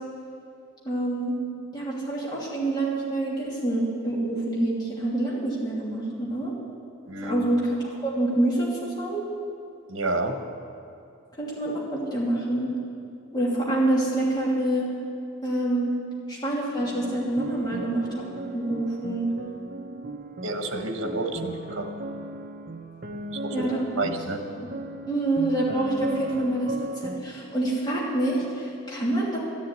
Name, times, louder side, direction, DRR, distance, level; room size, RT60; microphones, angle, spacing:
voice 1, 0.8-1.3 1.7-6.5 7.2-9.2 11.4-12.7 13.3-14.8 15.4-15.9 16.3-18.2 18.5-19.3 23.5-23.8 25.1-26.7 27.0-29.4, right 1 dB, 20° left, -6 dB, 2.8 m, -26 dB
voice 2, 7.1-7.5 9.9-10.4 20.4-21.9 23.3-23.7 24.0-24.4, right 2 dB, 75° right, 5 dB, 1.2 m, -29 dB
sound 1, 16.8-27.2, right 1 dB, 45° right, 0.7 m, -37 dB
13.0 x 7.5 x 9.8 m, 2.6 s
head